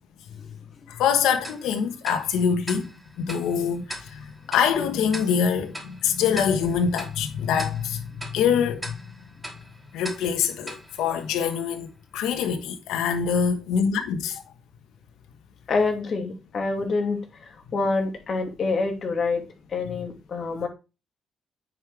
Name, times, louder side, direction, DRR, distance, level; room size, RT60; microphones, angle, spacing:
voice 1, 0.9-2.9 3.2-9.0 9.9-14.4, left 7 dB, 90° left, 1.3 m, -25 dB
Tick-tock, 1.4-11.9, right 1 dB, 10° right, 3.5 m, -42 dB
voice 2, 15.7-19.4 19.7-20.7, left 3 dB, 50° left, 2.8 m, -26 dB
9.3 x 5.5 x 4.9 m
cardioid pair, 90°, 0 cm